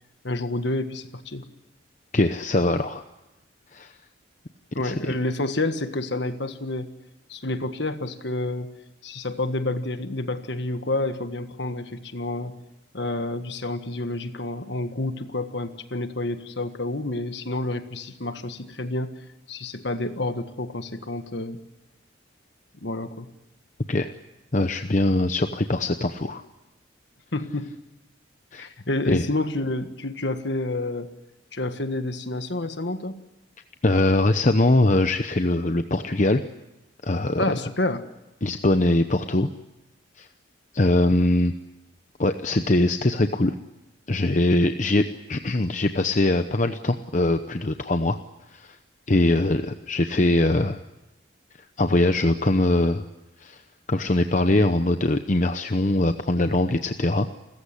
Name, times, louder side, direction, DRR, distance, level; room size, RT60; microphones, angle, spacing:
voice 1, 0.2-1.5 4.7-6.9 7.3-8.7 9.0-12.5 12.9-19.1 19.5-21.6 22.8-23.3 27.3-27.7 28.6-31.1 31.5-33.2 37.4-38.0, left 2 dB, 60° left, 9 dB, 1.6 m, -29 dB
voice 2, 2.1-3.0 3.7-3.9 4.8-5.1 23.9-24.1 24.5-26.4 28.5-28.7 29.1-29.2 33.8-36.4 37.0-37.6 38.4-39.5 40.2-40.3 40.7-41.5 42.2-43.5 44.1-48.2 48.5-48.8 49.1-50.8 51.8-53.0 53.4-53.6 53.9-57.3, left 2 dB, 40° left, 8 dB, 0.8 m, -22 dB
29.5 x 15.0 x 9.9 m, 0.97 s
head